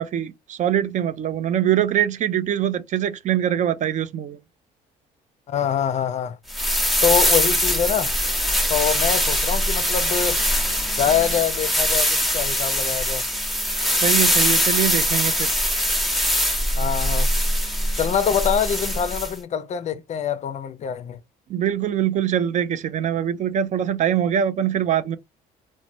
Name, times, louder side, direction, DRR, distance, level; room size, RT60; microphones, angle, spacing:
voice 1, 0.0-4.4 14.0-15.5 21.5-25.2, right 10 dB, 45° right, 0.4 m, -23 dB
voice 2, 5.5-6.4 7.0-8.1 8.7-10.4 11.0-13.2 16.8-17.3 18.0-21.2, left 8 dB, 45° left, 0.4 m, -24 dB
sound 1, 6.5-19.3, equal, ahead, 0.8 m, -22 dB
3.0 x 2.1 x 2.5 m
cardioid pair, 110°, 17 cm